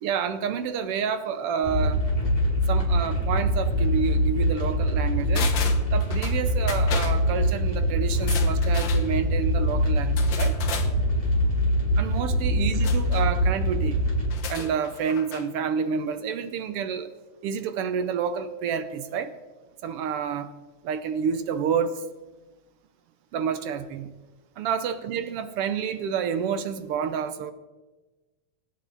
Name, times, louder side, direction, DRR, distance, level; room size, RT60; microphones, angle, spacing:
voice 1, 0.0-2.0 2.7-5.5 5.9-10.6 12.0-14.0 14.5-17.1 17.4-19.3 19.8-20.5 20.8-22.0 23.3-24.1 24.6-27.5, right 7 dB, 75° right, 11 dB, 1.4 m, -29 dB
sound 1, 1.6-14.3, equal, 10° left, 6.1 m, -23 dB
sound 2, 5.3-6.4 6.7-7.2 8.1-9.0 10.2-10.9 12.8-13.3 14.2-15.5 15.8-15.9, left 6 dB, 55° left, 1.5 m, -34 dB
24.5 x 9.7 x 4.0 m, 1.2 s
omnidirectional pair, 3.4 m